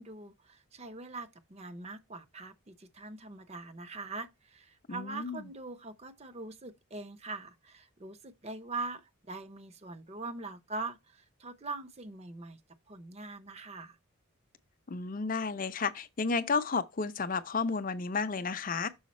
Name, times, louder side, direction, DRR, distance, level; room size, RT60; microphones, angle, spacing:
voice 1, 0.0-12.6 12.9-14.0, right 3 dB, 30° right, 0.6 m, -42 dB
voice 2, 4.9-5.4 14.9-18.9, left 4 dB, 40° left, 0.5 m, -32 dB
6.3 x 4.8 x 4.1 m
head